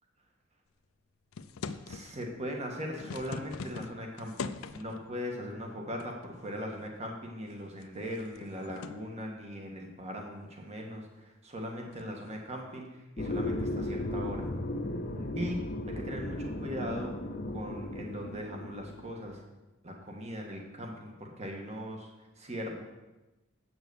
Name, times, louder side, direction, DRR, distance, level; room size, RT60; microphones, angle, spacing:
sound 1, 1.3-2.3 2.8-5.0 6.0-6.5 6.9-7.0 7.6-9.1 11.9-12.2, left 4 dB, 80° left, 0.5 m, -42 dB
voice 1, 1.8-14.5 15.3-15.6 15.9-17.2 17.5-19.4 19.8-22.1 22.4-22.8, equal, 30° right, 1 dB, 1.5 m, -39 dB
sound 2, 13.2-19.2, left 1 dB, 45° left, 0.7 m, -36 dB
8.0 x 6.1 x 6.9 m, 1.1 s
head